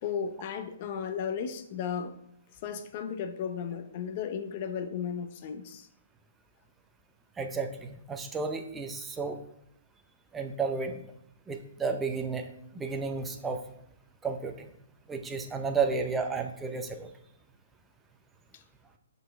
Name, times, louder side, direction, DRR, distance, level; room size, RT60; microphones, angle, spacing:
voice 1, 0.0-2.2 2.6-5.9 18.5-18.6, left 7 dB, 40° left, 8 dB, 0.6 m, -35 dB
voice 2, 7.4-9.4 10.3-11.0 11.5-13.6 14.2-14.7 15.1-17.1, right 4 dB, 10° right, 5 dB, 0.5 m, -32 dB
6.6 x 4.0 x 3.5 m, 0.76 s
hypercardioid pair, 150°, 0 cm